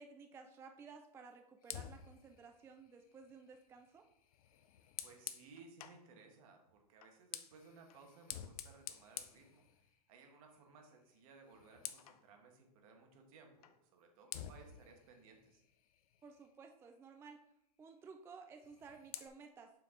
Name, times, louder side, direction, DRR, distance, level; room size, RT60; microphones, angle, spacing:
voice 1, 0.0-4.1 16.2-17.4 17.8-19.7, right 5 dB, 15° right, 5 dB, 0.3 m, -55 dB
Fire, 1.6-6.1 6.9-10.2 10.6-10.8 11.2-12.2 13.6-13.8 14.3-16.6 18.5-19.3, left 10 dB, 65° left, 0.5 m, -51 dB
voice 2, 5.0-15.6, right 4 dB, 60° right, 4 dB, 1.3 m, -61 dB
5.7 x 4.7 x 3.7 m, 0.79 s
hypercardioid pair, 115°, 20 cm